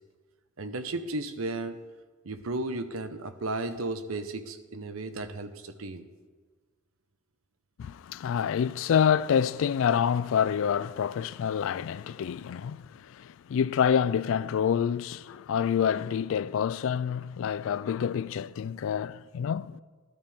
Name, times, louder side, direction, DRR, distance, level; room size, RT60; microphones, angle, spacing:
voice 1, 0.6-1.8 2.2-6.1, right 2 dB, 85° right, 0.8 m, -34 dB
voice 2, 7.8-19.8, left 8 dB, 70° left, 0.3 m, -27 dB
13.0 x 12.0 x 3.5 m
head